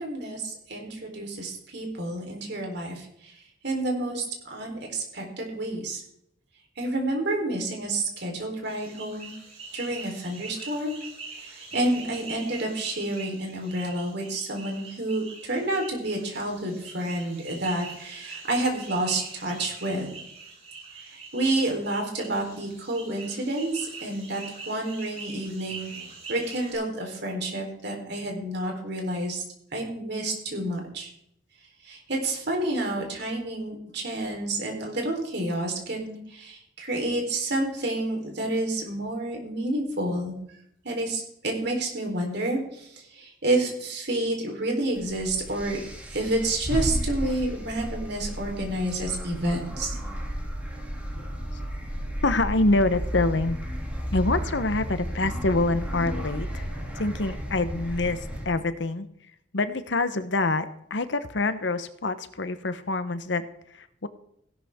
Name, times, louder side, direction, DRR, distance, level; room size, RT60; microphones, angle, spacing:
voice 1, 0.0-3.3 3.6-6.0 6.8-9.3 9.7-11.0 11.4-20.1 21.0-25.9 26.3-29.4 29.7-31.1 31.8-40.4 40.8-50.0, right 1 dB, 60° right, 1 dB, 4.0 m, -29 dB
sound 1, 8.6-26.7, right 4 dB, 35° right, 6.8 m, -43 dB
sound 2, 45.0-58.5, equal, 10° right, 2.7 m, -33 dB
voice 2, 51.2-51.6 52.2-53.6 54.1-56.7 56.9-64.1, left 2 dB, 70° left, 12 dB, 1.0 m, -26 dB
16.5 x 12.0 x 3.7 m, 0.73 s
head